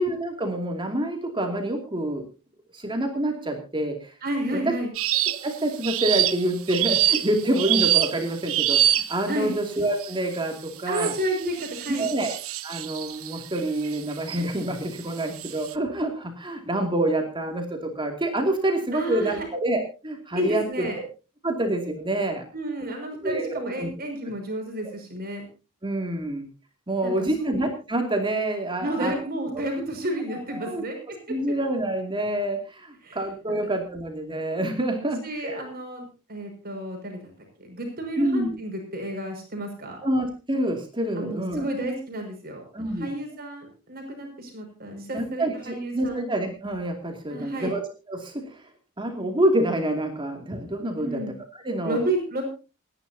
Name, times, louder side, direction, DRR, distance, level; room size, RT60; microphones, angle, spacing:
voice 1, 0.0-2.2 2.7-4.1 4.7-4.8 5.3-11.1 12.0-12.3 12.6-20.7 21.4-22.4 23.2-23.9 25.8-26.5 26.9-29.2 30.3-30.8 31.3-35.6 38.2-38.5 40.0-41.7 42.7-43.1 45.1-48.3 49.0-51.2 51.5-52.0, right 1 dB, 20° right, 3 dB, 2.6 m, -27 dB
voice 2, 4.2-4.9 9.3-9.5 10.9-12.1 18.9-19.5 20.3-21.0 22.5-25.4 27.0-27.6 28.8-31.0 33.0-33.2 35.0-37.2 37.6-40.0 41.2-42.6 43.0-46.2 47.3-47.7 51.0-51.3 51.8-52.4, right 1 dB, 45° right, 3 dB, 5.9 m, -31 dB
sound 1, 5.0-5.5 5.8-9.3 10.0-10.4 10.9-14.4 15.0-15.7, right 12 dB, 70° right, 0.9 m, -25 dB
27.5 x 11.0 x 2.8 m, 0.33 s
head